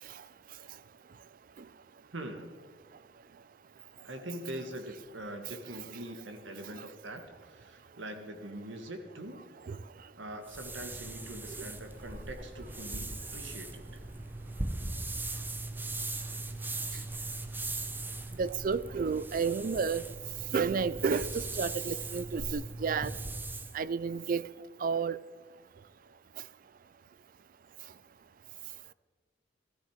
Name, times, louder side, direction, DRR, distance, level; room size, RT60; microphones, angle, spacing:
voice 1, 2.1-2.6 4.0-9.4 10.2-14.0, right 1 dB, 80° right, 1.7 m, -43 dB
sound 1, 10.5-23.8, right 2 dB, 10° right, 0.7 m, -39 dB
voice 2, 18.4-20.0 20.5-23.1 23.7-24.5 24.8-25.2, right 5 dB, 45° right, 0.4 m, -31 dB
14.0 x 13.5 x 5.0 m
head